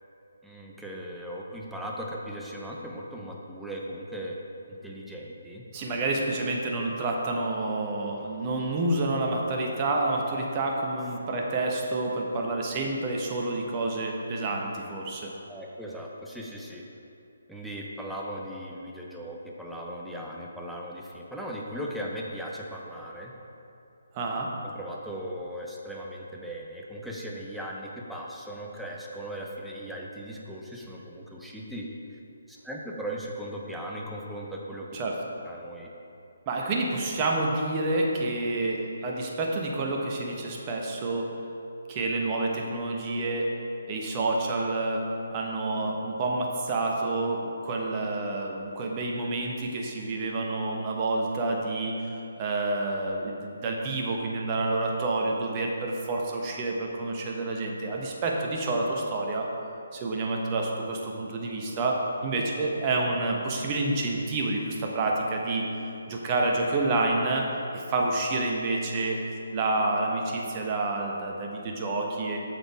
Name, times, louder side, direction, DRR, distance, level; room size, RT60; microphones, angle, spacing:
voice 1, 0.4-4.4 4.7-5.6 15.5-16.8 17.5-23.3 24.6-31.9 32.5-34.9 35.5-35.9, equal, ahead, -3 dB, 0.8 m, -38 dB
voice 2, 5.7-15.3 24.1-24.5 34.9-35.2 36.5-41.4 41.9-43.5 43.9-45.0 45.3-59.5 59.9-65.7 66.1-69.2 69.5-72.4, right 2 dB, 25° right, 0 dB, 1.1 m, -28 dB
7.8 x 6.7 x 4.7 m, 2.8 s
figure-of-eight pair, 140°, 0 cm